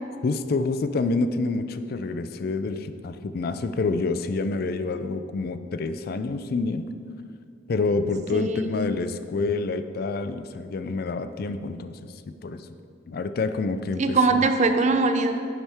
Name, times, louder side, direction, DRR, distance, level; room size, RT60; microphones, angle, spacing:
voice 1, 0.2-6.9 7.7-12.7 13.1-14.4, left 3 dB, 55° left, 10 dB, 0.4 m, -28 dB
voice 2, 8.3-8.9 14.0-15.3, right 3 dB, 40° right, 7 dB, 0.6 m, -22 dB
9.9 x 7.4 x 3.5 m, 2.3 s
head